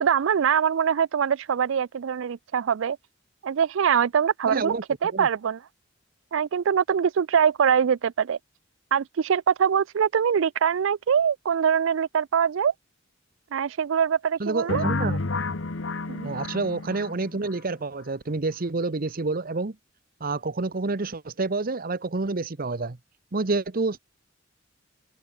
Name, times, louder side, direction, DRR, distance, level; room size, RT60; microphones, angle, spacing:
voice 1, 0.0-3.0 3.4-4.7 5.0-5.6 6.3-8.4 8.9-12.7 13.5-14.8 16.1-16.3, right 7 dB, 85° right, 0.4 m, -23 dB
voice 2, 4.5-4.8 5.1-5.3 14.4-15.2 16.2-19.8 20.2-23.0 23.3-24.0, right 3 dB, 50° right, 0.9 m, -28 dB
sound 1, 14.7-17.6, left 3 dB, 80° left, 1.1 m, -30 dB
open air
head